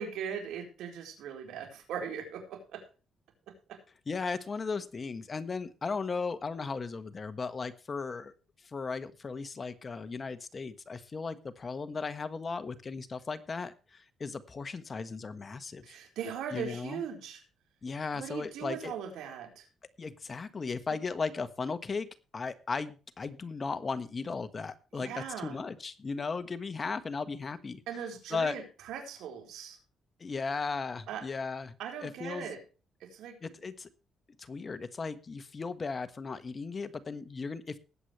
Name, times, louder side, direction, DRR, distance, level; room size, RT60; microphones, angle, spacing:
voice 1, 0.0-2.8 3.5-3.8 15.8-17.4 18.1-19.7 24.9-25.6 27.9-29.8 31.1-31.2 31.8-32.6 33.0-33.4, right 7 dB, 80° right, 3 dB, 4.1 m, -39 dB
voice 2, 4.1-8.3 8.7-16.0 16.5-17.0 17.8-18.9 20.0-22.1 22.3-27.8 28.3-28.6 30.2-31.7 32.0-32.5 33.4-33.9 34.4-37.8, left 4 dB, 35° left, 12 dB, 1.4 m, -36 dB
19.5 x 8.3 x 3.2 m, 0.33 s
cardioid pair, 90°, 0 cm